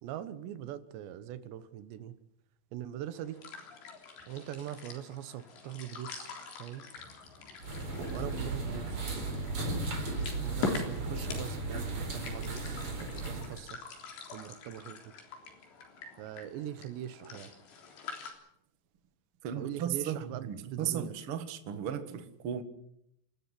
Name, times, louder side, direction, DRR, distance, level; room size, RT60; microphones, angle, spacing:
voice 1, 0.0-2.1 2.7-3.4 4.3-6.3 6.6-6.8 8.1-9.1 10.4-13.8 14.3-15.2 16.2-17.5 19.6-21.1, right 11 dB, 85° right, 13 dB, 3.4 m, -42 dB
sound 1, 3.1-18.3, left 4 dB, 75° left, 5.8 m, -44 dB
sound 2, 7.6-13.6, right 2 dB, 35° right, 4.8 m, -35 dB
voice 2, 19.4-22.6, right 9 dB, 55° right, 10 dB, 1.5 m, -35 dB
28.5 x 13.0 x 9.7 m, 0.79 s
omnidirectional pair, 5.0 m